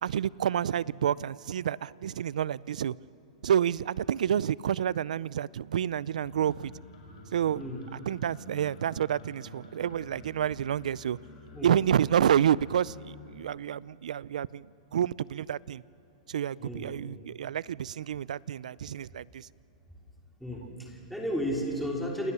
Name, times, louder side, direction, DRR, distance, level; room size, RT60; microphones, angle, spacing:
voice 1, 0.0-2.9 3.4-6.7 7.3-7.6 8.1-11.2 11.6-14.7 14.9-15.8 16.3-19.5, right 9 dB, 85° right, 22 dB, 0.5 m, -29 dB
sound 1, 6.2-13.5, left 2 dB, 55° left, 5.5 m, -50 dB
voice 2, 16.6-17.0 20.4-22.3, equal, ahead, -2 dB, 3.0 m, -33 dB
29.0 x 26.5 x 7.0 m, 2.9 s
hypercardioid pair, 165°, 4 cm